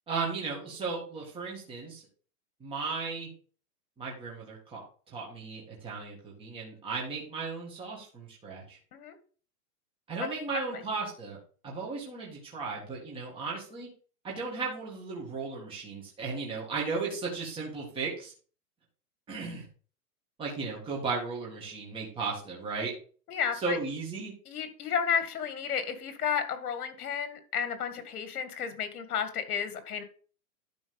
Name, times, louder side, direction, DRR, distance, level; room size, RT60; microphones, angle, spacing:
voice 1, 0.1-2.0 2.6-3.3 4.0-4.8 5.1-8.8 10.1-11.4 11.6-13.9 14.2-18.3 19.3-19.6 20.4-22.9 23.5-24.3, right 4 dB, 10° right, -3 dB, 2.0 m, -35 dB
voice 2, 23.3-23.8 24.5-30.0, left 7 dB, 70° left, 9 dB, 2.0 m, -32 dB
11.5 x 4.0 x 5.3 m, 0.41 s
hypercardioid pair, 165°, 46 cm